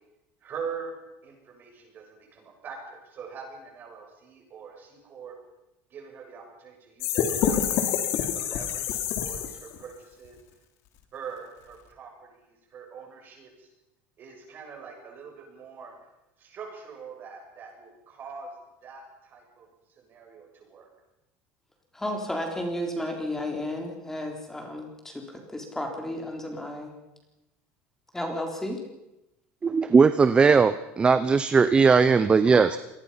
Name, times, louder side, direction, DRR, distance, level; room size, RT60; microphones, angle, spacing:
voice 1, 0.4-1.0 1.2-5.4 5.9-10.4 11.1-13.7 14.2-16.0 16.4-18.5 18.8-19.7 20.0-20.9, right 6 dB, 35° right, 2 dB, 7.2 m, -43 dB
sound 1, 7.0-9.8, left 8 dB, 55° left, 3.1 m, -27 dB
voice 2, 21.9-26.9 28.1-28.8, left 1 dB, 5° left, 2 dB, 3.8 m, -33 dB
voice 3, 29.6-32.8, right 5 dB, 20° right, 13 dB, 0.8 m, -19 dB
26.0 x 20.5 x 5.8 m, 0.93 s
cardioid pair, 150°, 6 cm